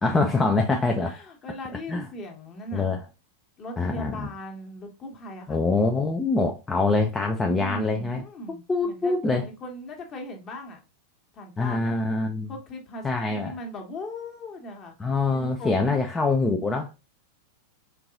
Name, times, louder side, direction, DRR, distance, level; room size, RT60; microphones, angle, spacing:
voice 1, 0.0-1.1 1.9-2.1 2.7-3.0 3.8-4.3 5.5-8.2 8.7-9.5 11.6-12.5 13.0-13.6 15.0-16.9, left 3 dB, 15° left, 0.5 m, -24 dB
voice 2, 1.0-2.9 3.6-5.6 7.4-10.8 11.3-12.0 12.5-14.9 15.3-16.0, left 1 dB, 30° left, 1.3 m, -39 dB
4.5 x 3.7 x 2.5 m
figure-of-eight pair, 90°, 0 cm